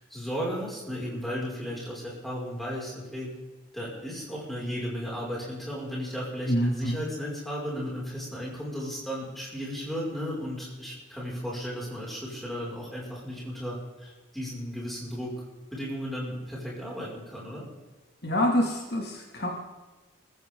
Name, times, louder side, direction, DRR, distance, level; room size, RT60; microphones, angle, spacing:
voice 1, 0.0-3.3 3.7-15.4 15.7-17.7, equal, ahead, -5 dB, 6.0 m, -35 dB
voice 2, 6.5-7.0 18.2-19.5, equal, 50° left, 0 dB, 2.6 m, -26 dB
25.0 x 14.5 x 3.9 m, 1.2 s
head